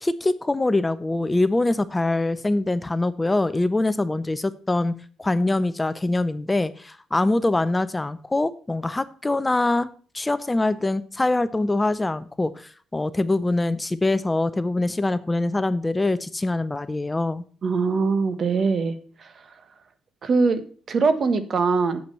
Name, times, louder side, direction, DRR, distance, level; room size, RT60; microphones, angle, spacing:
voice 1, 0.0-4.9 5.2-9.9 10.1-17.4, left 2 dB, 15° left, 14 dB, 0.5 m, -24 dB
voice 2, 17.6-19.3 20.2-22.0, right 4 dB, 50° right, 11 dB, 1.3 m, -22 dB
8.5 x 7.6 x 5.3 m, 0.43 s
cardioid pair, 90°, 0 cm